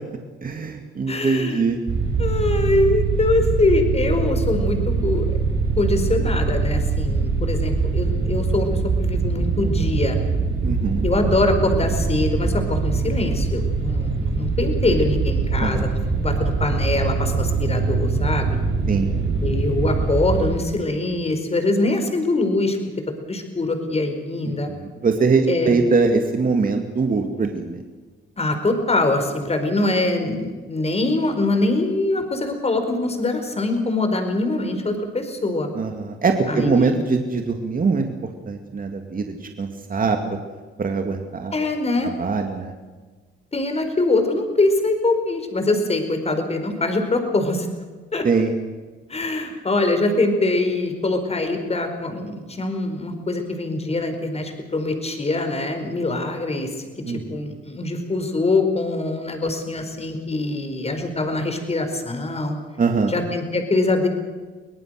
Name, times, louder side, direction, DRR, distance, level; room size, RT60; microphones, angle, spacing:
voice 1, 0.4-1.8 10.6-11.1 15.6-15.9 18.9-19.1 24.7-27.8 35.8-38.1 38.5-40.2 40.8-41.6 42.0-42.7 48.2-48.5 57.0-57.3 62.8-63.1, right 4 dB, 40° right, 4 dB, 2.3 m, -22 dB
voice 2, 1.1-1.6 2.2-5.2 5.8-10.2 11.0-18.6 19.4-22.8 23.2-24.7 25.5-25.8 28.4-35.7 36.5-36.9 41.5-42.1 43.5-47.7 48.1-48.2 49.1-56.7 57.1-62.6 63.1-64.1, left 2 dB, 30° left, 6 dB, 4.7 m, -23 dB
sound 1, 1.9-20.6, right 4 dB, 65° right, 6.4 m, -23 dB
24.0 x 18.5 x 6.6 m, 1.4 s
cardioid pair, 80°, 21 cm